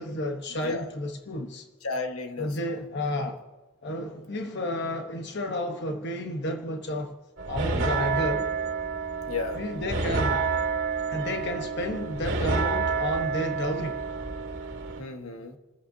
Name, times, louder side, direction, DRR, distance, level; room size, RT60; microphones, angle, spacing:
voice 1, 0.0-1.7 2.4-3.4 3.8-7.1 7.5-8.5 9.5-10.4 11.1-14.0, left 1 dB, 50° left, 1.1 m, -31 dB
voice 2, 1.8-2.8 7.7-8.0 9.3-9.6 15.0-15.6, left 4 dB, 75° left, 1.6 m, -34 dB
sound 1, 7.4-15.0, right 4 dB, 55° right, 2.3 m, -29 dB
29.5 x 15.0 x 2.8 m
head